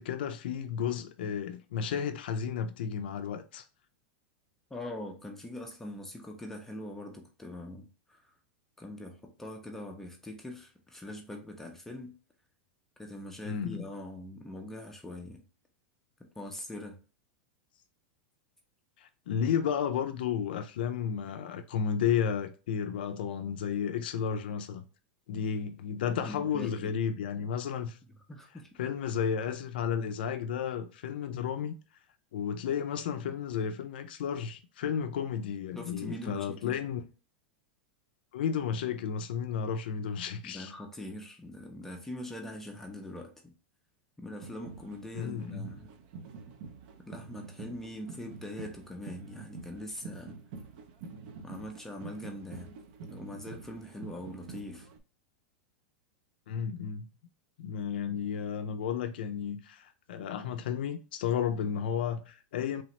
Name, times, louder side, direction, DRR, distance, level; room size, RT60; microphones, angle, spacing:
voice 1, 0.0-3.6 13.4-13.8 19.0-24.8 25.3-28.0 28.8-31.8 32.3-37.0 38.3-40.7 45.1-45.7 56.5-57.1 57.6-62.8, left 7 dB, 80° left, 0.3 m, -32 dB
voice 2, 4.7-8.3 8.8-12.1 13.0-15.4 16.2-17.0 26.2-26.9 28.3-28.7 35.7-36.8 40.4-43.5 44.2-45.9 47.0-50.4 51.4-52.7 53.1-54.9, left 1 dB, 5° left, 0.4 m, -42 dB
sound 1, 44.4-55.0, right 4 dB, 55° right, 0.4 m, -47 dB
3.2 x 2.0 x 2.8 m
supercardioid pair, 135°, 5 cm